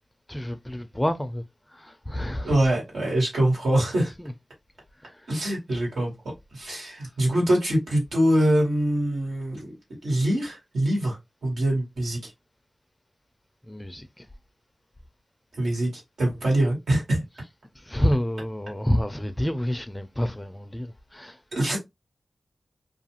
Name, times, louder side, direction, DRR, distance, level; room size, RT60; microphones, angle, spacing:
voice 1, 0.3-2.7 3.9-4.3 5.0-5.5 5.7-5.8 13.6-14.3 17.3-17.5 17.7-21.4, equal, 15° left, 0.4 m, -29 dB
voice 2, 2.4-4.1 5.3-9.8 10.0-12.3 15.5-15.9 16.2-17.2 21.5-21.8, right 1 dB, 85° right, 1.6 m, -24 dB
2.5 x 2.4 x 2.8 m
cardioid pair, 65°, 0 cm